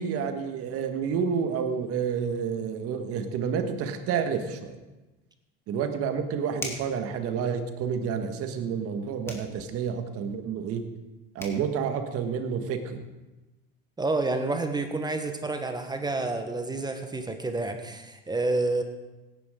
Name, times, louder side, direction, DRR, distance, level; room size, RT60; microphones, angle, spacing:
voice 1, 0.0-4.7 5.7-10.8 11.3-13.0, right 6 dB, 50° right, 7 dB, 1.7 m, -29 dB
sound 1, 5.6-5.7 6.5-7.0 9.2-9.5 11.1-11.2 11.4-11.6, left 1 dB, 10° left, 2.7 m, -37 dB
voice 2, 14.0-18.8, right 2 dB, 15° right, 7 dB, 1.2 m, -29 dB
16.5 x 10.5 x 3.8 m, 1.1 s
hypercardioid pair, 90°, 29 cm